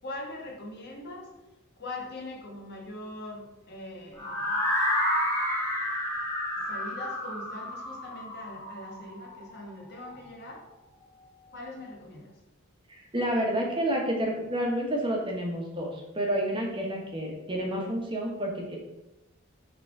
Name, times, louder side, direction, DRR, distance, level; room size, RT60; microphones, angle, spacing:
voice 1, 0.0-1.3 1.8-4.6 6.6-10.6 11.5-12.3, left 2 dB, 55° left, 0 dB, 1.3 m, -41 dB
sound 1, 4.2-10.1, left 1 dB, 15° left, 2.1 m, -30 dB
voice 2, 12.9-18.8, right 1 dB, 25° right, -1 dB, 1.2 m, -29 dB
5.6 x 3.9 x 4.7 m, 0.95 s
head